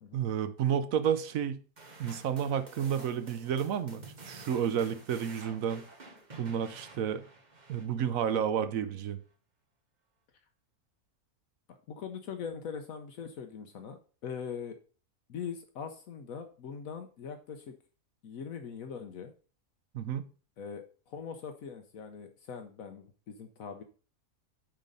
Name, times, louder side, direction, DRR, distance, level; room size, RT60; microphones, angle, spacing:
voice 1, 0.1-1.6 2.0-5.8 6.4-7.2 7.7-9.2 19.9-20.3, right 8 dB, 70° right, 12 dB, 1.1 m, -31 dB
sound 1, 1.8-8.3, right 2 dB, 30° right, 1.4 m, -50 dB
voice 2, 11.7-14.8 15.3-17.7 18.2-19.3 20.6-23.8, left 6 dB, 70° left, 6 dB, 1.2 m, -42 dB
8.9 x 3.9 x 5.3 m, 0.39 s
omnidirectional pair, 1.5 m